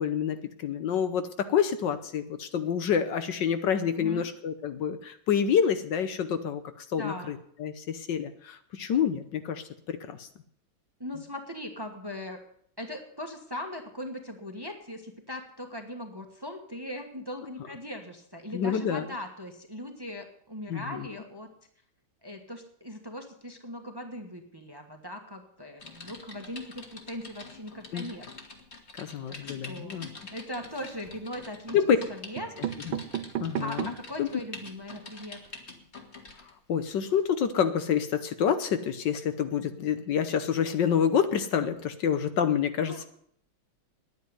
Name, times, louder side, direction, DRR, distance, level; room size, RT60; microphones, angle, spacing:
voice 1, 0.0-10.3 18.5-19.1 20.7-21.1 27.9-28.1 29.0-30.1 31.7-32.0 32.9-33.0 33.4-33.9 34.2-34.3 36.7-43.0, left 8 dB, 70° left, 10 dB, 1.5 m, -28 dB
voice 2, 4.0-4.3 6.9-7.3 11.0-12.4 12.8-21.5 22.2-28.3 29.3-31.8 32.1-32.7 33.6-35.4 42.9-43.0, left 1 dB, 15° right, 5 dB, 1.2 m, -39 dB
Typing, 25.8-36.5 37.1-37.3, left 3 dB, 35° left, 2.0 m, -46 dB
sound 1, 30.6-31.2 32.0-32.1 32.4-34.2 34.7-34.8 34.9-35.0 35.3-35.5, right 11 dB, 75° right, 1.4 m, -35 dB
9.8 x 9.4 x 9.6 m, 0.66 s
omnidirectional pair, 2.2 m